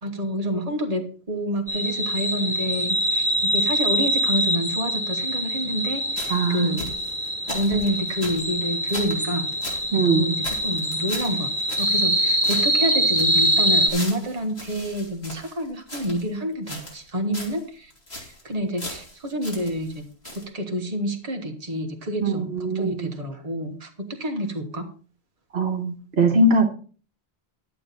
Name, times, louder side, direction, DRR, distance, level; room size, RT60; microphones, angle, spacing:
voice 1, 0.0-7.0 7.5-9.5 9.9-11.5 11.8-17.9 18.2-20.1 20.3-24.9 26.3-26.4, equal, 35° right, 3 dB, 1.5 m, -28 dB
sound 1, 1.7-13.9, right 1 dB, 10° left, 2.0 m, -24 dB
sound 2, 6.1-9.9 10.1-10.2 10.4-12.2 12.4-16.3 16.7-17.1 17.3-17.6 17.9-18.4 18.8-20.0 20.2-20.4, left 1 dB, 70° left, 3.4 m, -38 dB
voice 2, 6.3-6.8 9.9-10.2 22.2-23.1 25.5-26.7, right 2 dB, 70° right, 3 dB, 1.5 m, -21 dB
11.0 x 8.5 x 4.2 m, 0.39 s
omnidirectional pair, 1.1 m